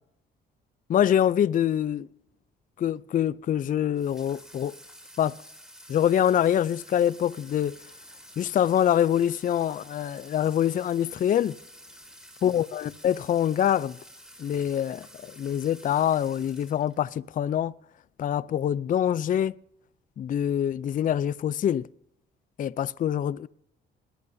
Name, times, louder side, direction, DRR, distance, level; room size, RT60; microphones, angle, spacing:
voice 1, 0.9-2.1 2.8-4.7 5.2-5.3 5.9-7.8 8.4-11.6 12.4-14.0 14.4-17.7 18.2-19.6 20.2-21.8 22.6-23.5, left 10 dB, 45° left, 0.4 m, -25 dB
Water tap faucet / Sink (filling or washing), 4.0-17.1, equal, 5° right, 3.8 m, -50 dB
21.5 x 12.5 x 2.7 m
cardioid pair, 90°, 20 cm